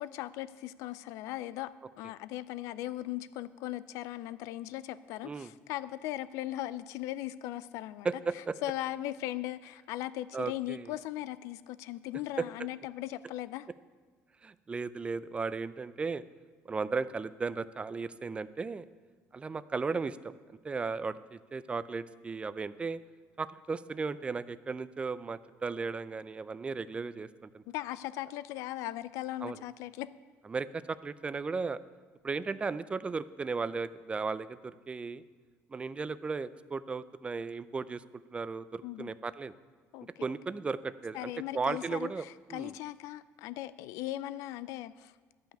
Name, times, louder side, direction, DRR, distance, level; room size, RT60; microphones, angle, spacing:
voice 1, 0.0-8.1 8.3-13.7 27.7-30.1 38.8-39.1 39.9-40.3 41.1-45.1, left 14 dB, 85° left, 16 dB, 0.4 m, -38 dB
voice 2, 8.0-8.5 10.3-10.9 12.4-12.5 14.4-16.2 16.7-18.9 19.3-23.0 23.4-27.6 29.4-29.6 30.5-31.8 32.2-35.2 35.7-38.0 38.3-39.5 40.2-42.2 42.5-42.7, right 4 dB, 20° right, 15 dB, 0.4 m, -35 dB
12.0 x 5.7 x 8.8 m, 1.4 s
cardioid pair, 115°, 5 cm